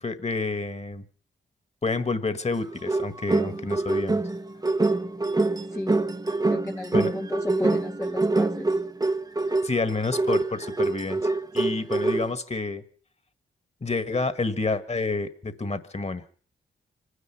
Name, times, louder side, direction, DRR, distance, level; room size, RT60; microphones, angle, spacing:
voice 1, 0.0-1.1 1.8-4.2 6.9-7.1 9.6-12.8 13.8-16.2, left 3 dB, 30° left, 12 dB, 1.7 m, -29 dB
sound 1, 2.5-12.3, right 2 dB, 20° right, 0.9 m, -25 dB
voice 2, 6.5-8.7, left 2 dB, 10° left, 4 dB, 0.8 m, -33 dB
25.0 x 9.9 x 5.8 m, 0.43 s
supercardioid pair, 50°, 20 cm